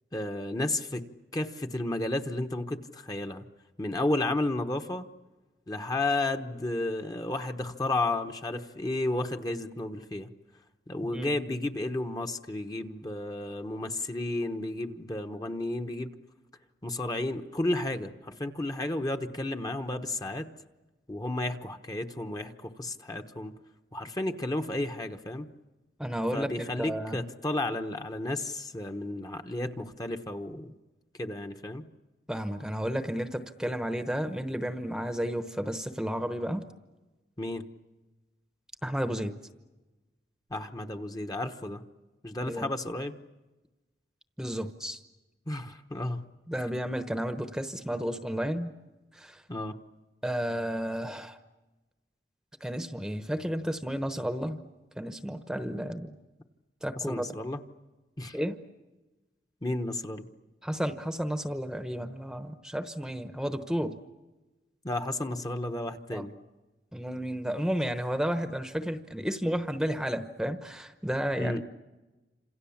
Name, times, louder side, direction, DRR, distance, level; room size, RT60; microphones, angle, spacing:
voice 1, 0.1-3.5 3.8-5.1 5.7-10.3 10.9-16.1 16.8-20.5 21.1-23.5 23.9-25.5 26.3-30.8 31.2-31.9 37.4-37.6 40.5-41.8 42.2-43.2 45.5-46.3 49.5-49.7 57.0-57.6 58.2-58.4 59.6-60.3 64.8-66.3 71.4-71.6, left 2 dB, 20° left, 5 dB, 1.1 m, -32 dB
voice 2, 26.0-26.5 26.8-27.2 32.3-36.6 38.8-39.3 42.4-42.7 44.4-45.0 46.5-48.7 49.1-49.4 50.2-51.4 52.6-54.6 55.0-56.2 56.8-57.3 58.3-58.6 60.6-64.0 66.1-66.2 66.9-71.6, equal, 5° right, 8 dB, 1.0 m, -32 dB
29.0 x 27.0 x 7.2 m, 1.1 s
head